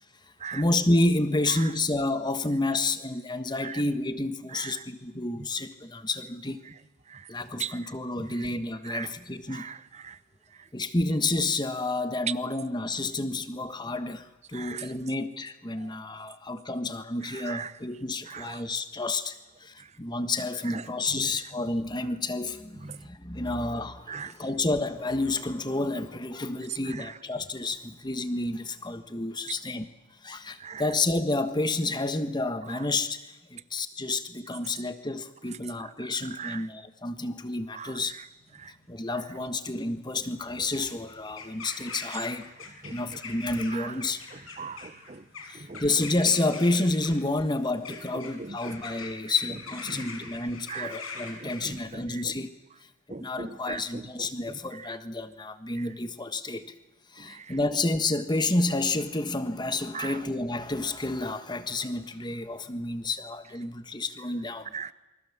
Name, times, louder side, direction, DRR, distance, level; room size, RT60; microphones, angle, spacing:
voice 1, 0.5-6.6 7.3-9.7 10.7-29.9 30.2-38.2 38.9-42.4 42.9-44.2 45.5-52.5 53.2-56.7 57.1-64.7, left 2 dB, 20° left, 10 dB, 1.4 m, -30 dB
voice 2, 4.5-4.8 5.4-5.5 6.6-6.7 7.1-7.3 7.6-7.9 8.2-8.5 8.8-9.1 9.5-10.2 10.5-10.7 14.5-14.9 15.8-15.9 17.2-17.7 18.3-18.6 19.8-19.9 20.6-21.4 22.7-23.1 24.1-24.3 26.8-27.2 30.6-30.9 32.7-32.9 35.8-36.7 37.7-38.3 38.6-38.7 42.8-43.0 43.7-44.0 44.3-45.2 45.5-46.0 48.1-48.8 49.9-50.3 50.7-51.0 51.4-52.3 53.1-55.0 55.7-55.9 57.2-57.6 59.9-60.2 64.7-64.9, right 6 dB, 35° right, 15 dB, 0.8 m, -40 dB
sound 1, 38.4-51.8, left 4 dB, 85° left, 5.7 m, -44 dB
28.5 x 24.0 x 7.3 m, 1.0 s
head